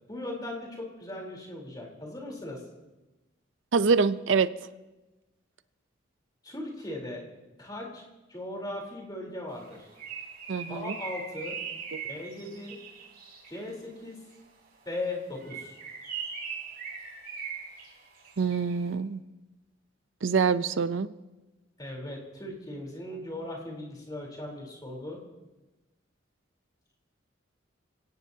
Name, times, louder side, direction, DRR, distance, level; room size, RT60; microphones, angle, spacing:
voice 1, 0.1-2.6 6.4-7.2 7.6-9.9 10.7-11.6 12.1-12.8 13.5-14.2 14.9-15.8 21.8-25.2, left 1 dB, 20° left, -1 dB, 3.7 m, -38 dB
voice 2, 3.7-4.5 10.5-11.0 11.9-12.0 18.4-19.2 20.2-21.1, right 5 dB, 85° right, 13 dB, 0.6 m, -25 dB
Bird, 9.6-13.7 15.3-18.8, right 6 dB, 50° right, 4.2 m, -40 dB
27.5 x 17.5 x 2.8 m, 1.1 s
head